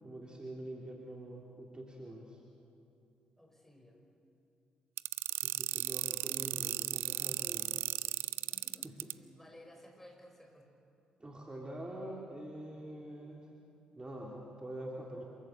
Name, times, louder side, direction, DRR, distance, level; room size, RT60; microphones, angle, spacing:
voice 1, 0.0-2.4 5.3-7.8 8.8-9.1 11.2-13.6 14.0-15.2, right 1 dB, 20° right, -1 dB, 3.1 m, -45 dB
voice 2, 3.4-4.0 8.5-10.7, left 1 dB, 10° left, 2 dB, 5.3 m, -57 dB
sound 1, 5.0-9.1, right 16 dB, 70° right, 0.4 m, -35 dB
27.0 x 14.5 x 8.0 m, 2.6 s
hypercardioid pair, 40°, 4 cm